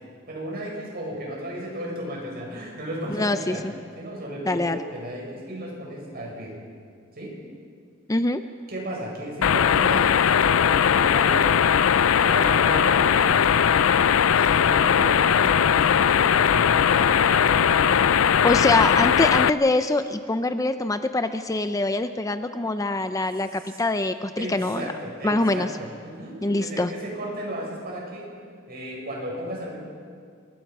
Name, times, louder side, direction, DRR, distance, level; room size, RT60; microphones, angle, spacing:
voice 1, 0.3-3.6 4.0-6.5 7.2-7.3 8.7-11.8 12.2-13.6 14.4-18.1 23.6-23.8 24.4-28.3 28.7-29.8, right 1 dB, 50° right, -2 dB, 7.3 m, -34 dB
voice 2, 3.1-3.7 4.5-4.8 8.1-8.4 18.4-24.9 25.2-25.7 26.4-26.9, left 2 dB, 15° left, 9 dB, 0.5 m, -24 dB
sound 1, 9.4-19.5, left 8 dB, 75° left, 0.5 m, -19 dB
26.5 x 22.5 x 5.5 m, 2.1 s
head